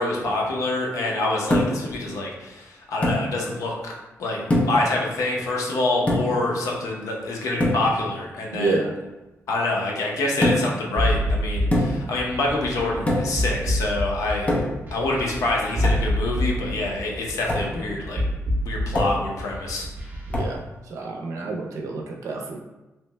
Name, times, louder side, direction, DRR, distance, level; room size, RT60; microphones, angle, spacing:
voice 1, 0.0-3.9 4.2-8.8 9.5-14.5 14.9-18.2 18.6-19.9, left 2 dB, 90° left, -1 dB, 0.7 m, -26 dB
sound 1, 1.5-1.9 3.0-3.3 4.5-4.9 6.1-6.4 7.6-7.9 10.4-10.8 11.7-12.1 13.1-13.4 14.5-14.9 15.8-16.1 17.5-17.7 18.9-19.3 20.3-20.6, left 1 dB, 25° left, 0.6 m, -23 dB
voice 2, 8.5-8.9 20.3-20.6 20.9-22.6, right 3 dB, 85° right, 1 dB, 0.5 m, -28 dB
sound 2, 11.0-20.5, equal, 35° right, 0.7 m, -27 dB
3.1 x 2.1 x 3.2 m, 1.1 s
wide cardioid pair, 120°, 5 cm